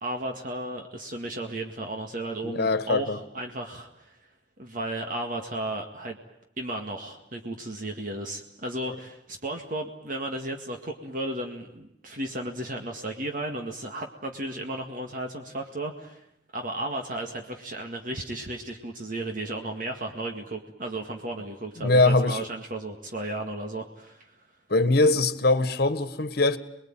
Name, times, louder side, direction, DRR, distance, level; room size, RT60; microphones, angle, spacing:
voice 1, 0.0-4.1 4.6-6.2 6.6-16.2 16.5-24.3, right 1 dB, 45° right, 2.0 m, -34 dB
voice 2, 2.4-3.2 21.8-22.4 24.7-26.6, left 2 dB, 60° left, 1.5 m, -22 dB
28.0 x 21.0 x 8.9 m
head